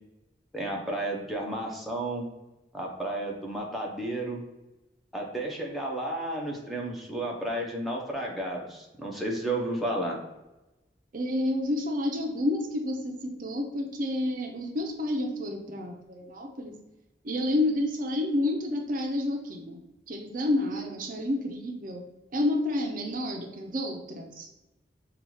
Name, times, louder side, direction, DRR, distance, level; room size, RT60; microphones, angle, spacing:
voice 1, 0.5-2.3 2.7-4.4 5.1-10.2, right 1 dB, ahead, -3 dB, 0.7 m, -32 dB
voice 2, 11.1-16.7 17.2-19.8 20.1-22.0 22.3-24.5, left 1 dB, 50° right, 3 dB, 0.6 m, -29 dB
5.4 x 2.3 x 3.1 m, 1.0 s
head